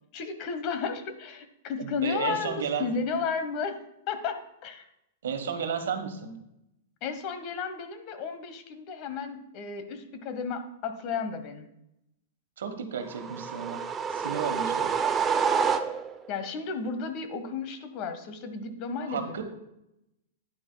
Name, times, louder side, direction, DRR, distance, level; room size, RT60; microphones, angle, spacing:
voice 1, 0.1-3.8 4.1-4.8 7.0-11.7 16.3-19.4, left 5 dB, 45° left, 8 dB, 1.2 m, -33 dB
voice 2, 1.8-2.9 5.2-6.3 12.6-15.0 19.1-19.4, right 6 dB, 75° right, 6 dB, 1.3 m, -33 dB
sound 1, 13.1-16.3, right 6 dB, 20° right, 0.6 m, -28 dB
11.0 x 9.6 x 2.3 m, 0.83 s
hypercardioid pair, 120°, 0 cm